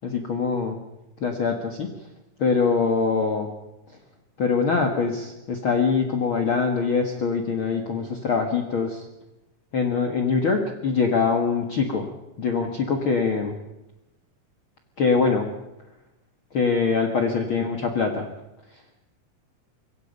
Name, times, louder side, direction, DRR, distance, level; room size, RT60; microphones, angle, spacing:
voice 1, 0.0-0.8 1.2-1.9 2.4-3.5 4.4-9.1 9.7-12.1 12.4-13.6 15.0-15.5 16.5-18.3, left 5 dB, 45° left, 3 dB, 2.2 m, -23 dB
25.5 x 23.0 x 5.5 m, 0.93 s
omnidirectional pair, 3.8 m